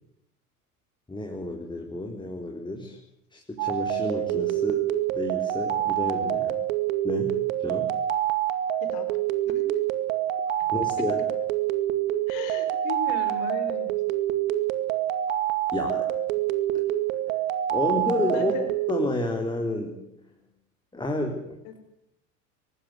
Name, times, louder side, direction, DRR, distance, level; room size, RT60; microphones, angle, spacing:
voice 1, 1.1-3.0 3.3-6.6 7.0-7.9 10.7-11.2 15.7-16.1 17.7-18.5 18.9-20.1 20.9-21.5, left 1 dB, 10° left, 2 dB, 4.1 m, -30 dB
sound 1, 3.6-19.1, right 12 dB, 60° right, 2.3 m, -26 dB
voice 2, 8.8-9.2 9.5-9.7 11.0-11.1 12.3-14.0 18.3-18.7 21.6-21.7, left 6 dB, 55° left, 8 dB, 5.4 m, -37 dB
24.5 x 19.5 x 9.8 m, 0.82 s
figure-of-eight pair, 75°, 46 cm